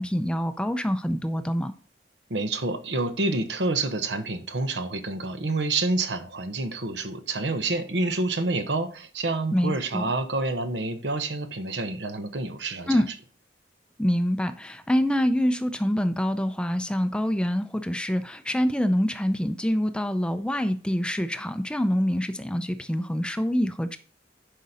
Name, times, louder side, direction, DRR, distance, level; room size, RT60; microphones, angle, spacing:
voice 1, 0.0-1.7 9.5-10.0 12.9-13.1 14.0-24.0, equal, 5° left, 0.5 m, -25 dB
voice 2, 2.3-13.0, right 2 dB, 75° right, 1.1 m, -28 dB
10.5 x 5.2 x 4.2 m
head